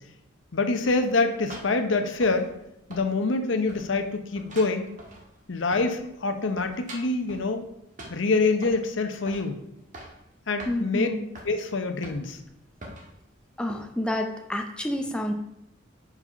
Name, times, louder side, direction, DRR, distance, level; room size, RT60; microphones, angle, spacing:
voice 1, 0.5-2.5 2.9-4.9 5.5-7.6 8.1-9.6 10.5-11.1 11.4-12.4, left 3 dB, 65° left, 7 dB, 0.7 m, -25 dB
sound 1, 0.9-2.7 2.9-3.4 3.7-6.1 6.3-7.5 8.0-8.9 9.3-9.5 9.8-10.2 10.6-10.8 11.3-11.5 12.0-12.4 12.8-13.1 13.7-13.8, right 1 dB, 40° right, 1.5 m, -44 dB
voice 2, 10.7-11.3 13.6-15.3, left 1 dB, 5° left, 3 dB, 0.5 m, -29 dB
5.5 x 4.9 x 5.4 m, 0.83 s
head